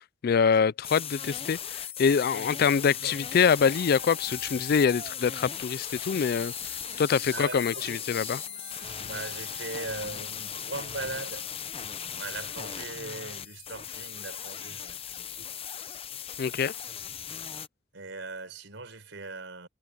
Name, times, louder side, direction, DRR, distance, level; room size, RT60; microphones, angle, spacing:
voice 1, 0.2-6.5 7.0-8.4 16.4-16.7, left 6 dB, 55° left, 0.4 m, -25 dB
sound 1, 0.8-17.7, left 8 dB, 30° left, 0.8 m, -38 dB
Traffic noise roadway noise, 3.2-10.9, right 4 dB, 45° right, 2.4 m, -50 dB
voice 2, 7.3-8.0 9.0-11.5 12.1-15.5 17.9-19.7, right 3 dB, 75° right, 4.8 m, -39 dB
head